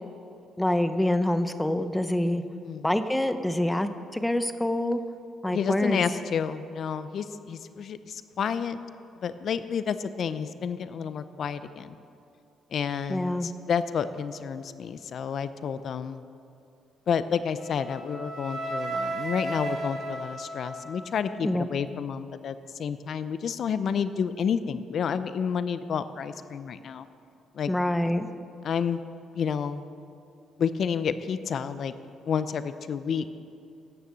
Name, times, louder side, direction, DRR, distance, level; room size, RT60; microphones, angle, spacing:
voice 1, 0.6-2.4 2.8-5.0 5.4-6.0 13.1-13.5 21.4-21.6 27.7-28.3, left 1 dB, 10° left, 10 dB, 0.8 m, -26 dB
voice 2, 5.5-8.8 9.2-12.0 12.7-16.2 17.1-27.1 27.5-27.7 28.6-29.0 29.3-29.8 30.6-31.9 32.3-33.3, left 7 dB, 60° left, 13 dB, 0.6 m, -30 dB
Wind instrument woodwind instrument, 17.6-21.6, right 2 dB, 65° right, 2.6 m, -35 dB
17.0 x 6.8 x 7.5 m, 2.6 s
cardioid pair, 90°, 0 cm